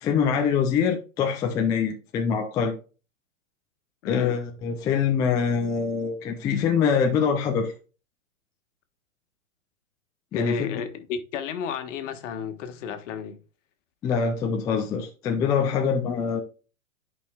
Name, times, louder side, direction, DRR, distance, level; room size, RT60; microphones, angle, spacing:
voice 1, 0.0-2.7 4.1-7.7 10.3-10.7 14.0-16.4, left 6 dB, 10° left, 0.3 m, -24 dB
voice 2, 4.0-4.4 10.3-13.4, left 7 dB, 60° left, 1.5 m, -32 dB
10.0 x 5.2 x 2.3 m
hypercardioid pair, 125°, 42 cm